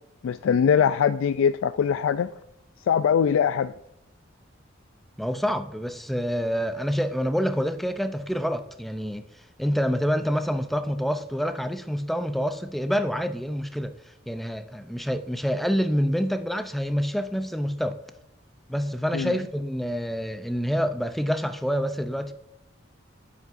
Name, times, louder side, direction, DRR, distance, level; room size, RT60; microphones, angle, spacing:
voice 1, 0.2-2.3 2.9-3.7 19.1-19.3, left 7 dB, 80° left, 0.3 m, -22 dB
voice 2, 5.2-9.2 9.6-18.0 18.7-22.3, equal, ahead, 0.4 m, -27 dB
9.5 x 8.4 x 2.5 m
head